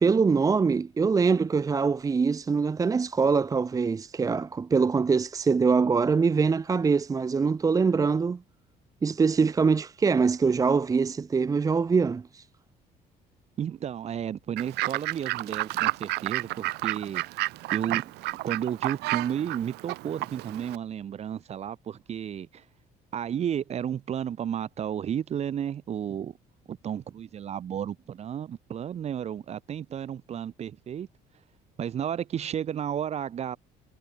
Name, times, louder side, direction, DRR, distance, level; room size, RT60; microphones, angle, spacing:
voice 1, 0.0-8.4 9.0-12.4, right 5 dB, 20° right, 1.1 m, -23 dB
voice 2, 13.6-17.2 17.7-18.1 18.4-22.6 23.1-26.3 26.7-31.1 31.8-33.6, right 9 dB, 40° right, 2.4 m, -32 dB
Fowl / Bird, 14.6-20.8, right 20 dB, 85° right, 0.8 m, -31 dB
cardioid pair, 150°, 17 cm